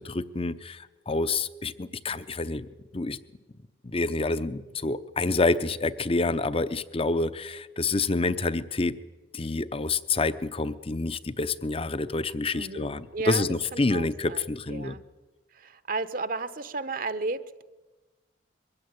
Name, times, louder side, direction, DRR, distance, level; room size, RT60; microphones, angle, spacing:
voice 1, 0.0-2.7 2.9-3.2 3.8-9.0 9.3-15.0, left 3 dB, 35° left, 15 dB, 0.8 m, -28 dB
voice 2, 12.5-13.4 13.7-15.0 15.5-17.6, right 3 dB, 55° right, 13 dB, 1.0 m, -34 dB
22.0 x 15.5 x 9.7 m, 1.2 s
head